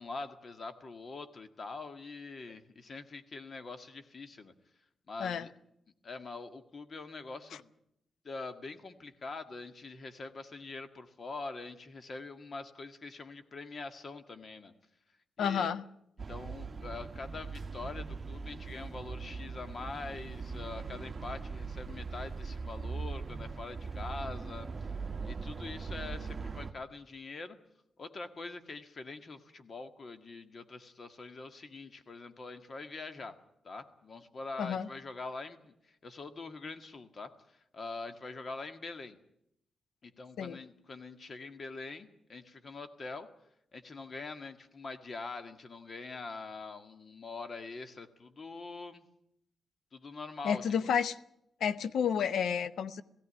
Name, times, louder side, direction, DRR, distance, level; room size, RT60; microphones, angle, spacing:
voice 1, 0.0-4.5 5.1-5.5 6.0-7.7 8.2-14.7 15.4-15.7 16.3-24.7 25.2-27.6 28.0-33.3 33.6-37.3 37.7-39.2 40.0-43.3 43.7-49.0 49.9-50.9, left 3 dB, 50° left, 9 dB, 1.8 m, -44 dB
voice 2, 15.4-15.8 34.6-34.9 40.4-40.6 50.4-51.2 51.6-53.0, left 7 dB, 85° left, 15 dB, 0.8 m, -30 dB
sound 1, 16.2-26.7, right 4 dB, 35° right, 1.2 m, -40 dB
18.0 x 16.0 x 9.9 m, 0.77 s
cardioid pair, 90°, 0 cm